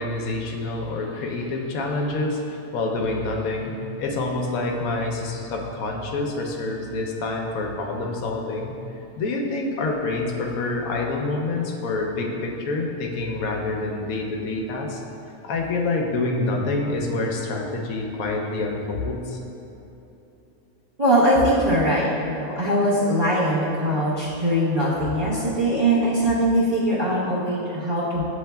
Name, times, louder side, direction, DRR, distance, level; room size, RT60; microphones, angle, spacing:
voice 1, 0.0-8.7 9.2-15.0 15.4-19.4, left 2 dB, 85° left, 1 dB, 1.0 m, -27 dB
voice 2, 21.0-28.2, right 1 dB, 35° right, -9 dB, 0.7 m, -21 dB
8.0 x 3.0 x 2.2 m, 3.0 s
omnidirectional pair, 1.4 m